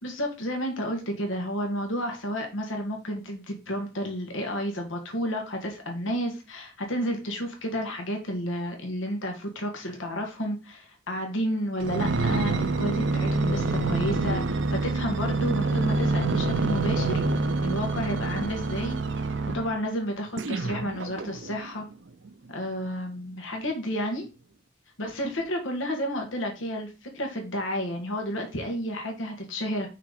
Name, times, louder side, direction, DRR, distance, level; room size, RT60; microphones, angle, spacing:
voice 1, 0.0-21.9 22.5-24.3 25.0-29.9, equal, 85° left, 3 dB, 1.6 m, -31 dB
sound 1, 11.8-19.8 20.4-21.6 22.3-22.4, right 3 dB, 75° right, 0.7 m, -27 dB
5.6 x 4.1 x 5.0 m, 0.31 s
head